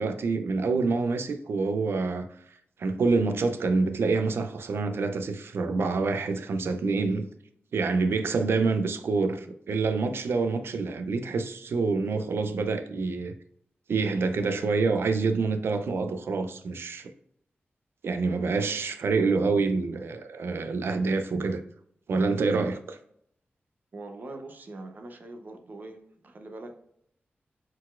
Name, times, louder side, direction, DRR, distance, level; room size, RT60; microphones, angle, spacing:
voice 1, 0.0-2.3 2.8-7.3 7.7-13.3 13.9-17.1 18.0-21.6 22.1-23.0, right 4 dB, 80° right, 0.4 m, -27 dB
voice 2, 23.9-26.9, right 2 dB, 50° right, 0.7 m, -43 dB
4.2 x 4.1 x 2.4 m
wide cardioid pair, 130°, 4 cm